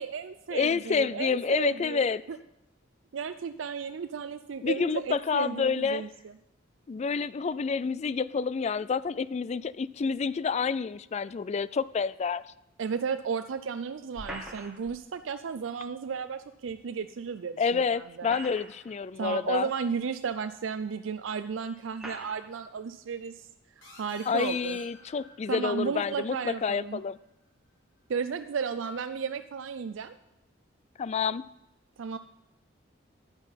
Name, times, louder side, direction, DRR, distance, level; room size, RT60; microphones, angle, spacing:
voice 1, 0.0-2.0 2.3-2.4 3.1-6.1 12.8-18.4 19.2-23.5 24.0-24.8 25.5-27.0 28.1-30.1 32.0-32.2, right 6 dB, 75° right, 9 dB, 0.4 m, -34 dB
voice 2, 0.5-2.2 4.6-6.1 6.9-12.4 17.6-19.7 24.3-27.2 31.0-31.5, left 5 dB, 35° left, 18 dB, 0.3 m, -28 dB
Tossing grenade onto cement, 14.1-15.0 16.7-16.8 18.0-19.0 19.8-19.9 20.9-21.0 21.9-22.5, right 1 dB, 5° right, 2.5 m, -42 dB
sound 1, 23.8-27.2, left 2 dB, 70° left, 4.4 m, -52 dB
10.5 x 9.0 x 5.7 m, 0.85 s
head